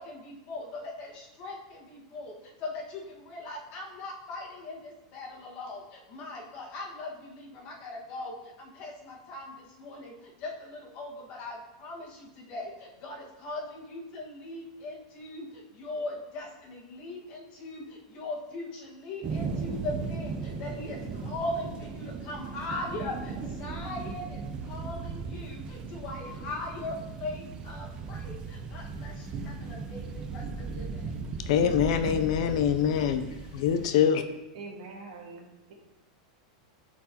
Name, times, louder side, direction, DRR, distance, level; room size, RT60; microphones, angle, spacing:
voice 1, 0.0-31.1, left 2 dB, 40° left, -2 dB, 1.6 m, -40 dB
sound 1, 19.2-33.9, right 4 dB, 25° right, 0.5 m, -37 dB
voice 2, 31.5-33.3 33.5-34.2, left 8 dB, 60° left, 9 dB, 0.5 m, -24 dB
voice 3, 34.5-35.7, right 3 dB, 70° right, 0 dB, 1.6 m, -44 dB
11.0 x 4.5 x 2.9 m, 1.0 s
supercardioid pair, 155°, 4 cm